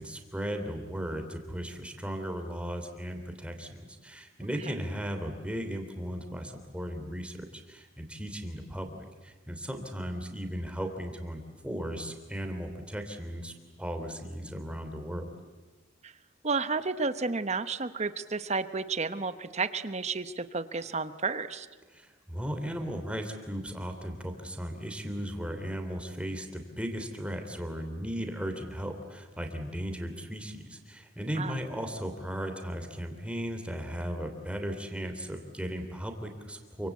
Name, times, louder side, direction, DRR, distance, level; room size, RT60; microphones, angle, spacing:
voice 1, 0.0-9.0 9.2-15.3 21.9-36.9, equal, 5° right, 5 dB, 3.1 m, -36 dB
voice 2, 16.4-21.7 31.4-31.5, right 4 dB, 35° right, 12 dB, 1.0 m, -31 dB
28.0 x 25.0 x 8.4 m, 1.3 s
head